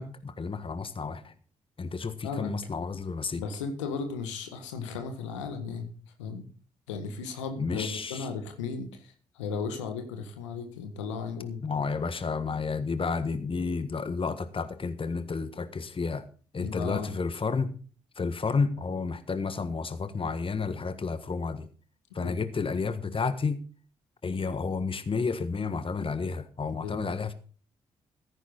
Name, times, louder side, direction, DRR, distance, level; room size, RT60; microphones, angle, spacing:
voice 1, 0.0-1.3 1.8-3.4 7.6-8.3 11.6-16.2 16.5-17.7 18.2-21.7 22.1-23.6 24.2-27.3, left 4 dB, 35° left, 11 dB, 1.5 m, -31 dB
voice 2, 3.3-5.9 6.2-6.5 6.9-11.6 16.6-17.2 22.2-22.4 26.6-27.0, left 5 dB, 85° left, 6 dB, 1.7 m, -35 dB
15.0 x 9.9 x 4.0 m, 0.39 s
hypercardioid pair, 40°, 15 cm